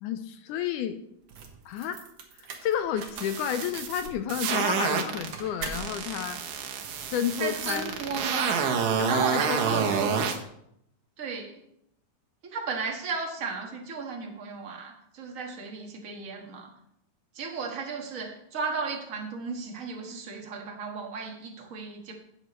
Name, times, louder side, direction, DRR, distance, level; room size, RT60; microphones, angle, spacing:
voice 1, 0.0-1.0 1.7-2.0 2.4-6.4 7.1-8.0 9.0-10.0, left 9 dB, 80° left, 9 dB, 2.0 m, -31 dB
sound 1, 1.2-8.5, right 6 dB, 60° right, 1.9 m, -43 dB
sound 2, 3.1-5.3 5.7-10.4, right 6 dB, 75° right, 2.6 m, -28 dB
voice 2, 7.4-8.7 9.1-10.2 11.2-11.5 12.4-16.7 17.3-22.1, right 5 dB, 40° right, 1 dB, 1.1 m, -34 dB
17.0 x 7.0 x 3.1 m, 0.76 s
omnidirectional pair, 3.9 m